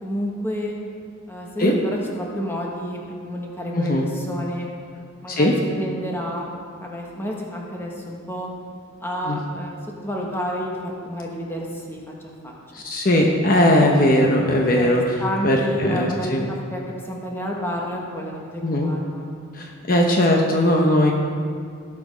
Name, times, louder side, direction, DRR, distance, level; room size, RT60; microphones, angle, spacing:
voice 1, 0.0-0.7 1.3-3.0 3.2-4.7 5.2-6.5 6.8-8.5 9.0-12.0 12.4-12.5 14.7-16.8 17.1-19.3 19.8-20.7, equal, 10° left, -2 dB, 1.5 m, -30 dB
voice 2, 3.7-4.1 5.3-5.5 9.2-9.4 12.7-16.4 18.6-18.9 19.5-21.1, left 1 dB, 45° left, 0 dB, 1.0 m, -19 dB
17.5 x 6.1 x 5.1 m, 2.2 s
head